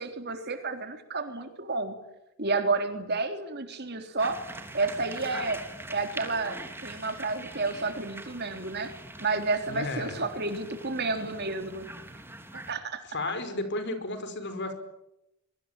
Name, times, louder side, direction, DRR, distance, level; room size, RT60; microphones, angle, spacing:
voice 1, 0.0-2.0 2.4-4.4 4.7-5.6 5.9-8.9 9.2-11.9 12.5-13.0, right 3 dB, 50° right, 6 dB, 3.6 m, -30 dB
sound 1, 4.2-12.7, right 2 dB, 10° right, 3.1 m, -43 dB
voice 2, 9.7-10.2 13.1-14.7, left 2 dB, 50° left, 9 dB, 5.0 m, -33 dB
25.0 x 23.5 x 9.1 m, 0.86 s
head